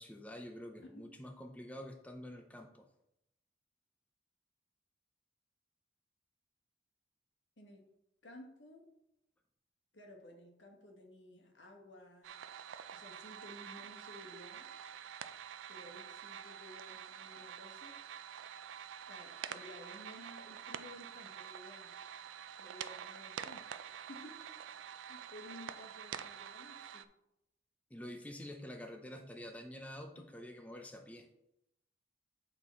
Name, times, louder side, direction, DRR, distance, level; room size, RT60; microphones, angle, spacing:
voice 1, 0.0-2.9 27.9-31.3, equal, 10° left, 4 dB, 0.4 m, -48 dB
voice 2, 8.2-8.9 9.9-12.4 12.9-14.7 15.7-18.0 19.1-21.9 22.6-24.5 24.9-27.1 30.1-30.3, left 1 dB, 70° left, 1 dB, 1.4 m, -55 dB
sound 1, 12.2-27.0, right 9 dB, 90° right, 0.4 m, -47 dB
8.4 x 3.9 x 4.2 m, 0.83 s
head